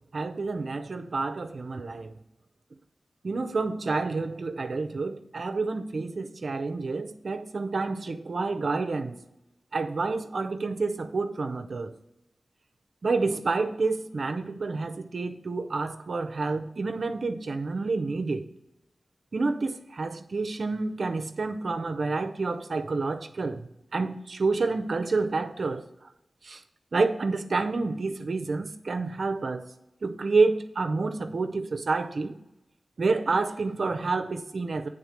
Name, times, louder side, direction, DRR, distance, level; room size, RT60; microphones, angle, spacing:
voice 1, 0.1-2.1 3.2-9.2 9.7-11.9 13.0-18.5 19.3-25.8 26.4-26.6 26.9-29.7 30.0-32.4 33.0-34.9, right 3 dB, 70° right, 0.6 m, -29 dB
8.9 x 3.6 x 6.4 m
cardioid pair, 45°, 0 cm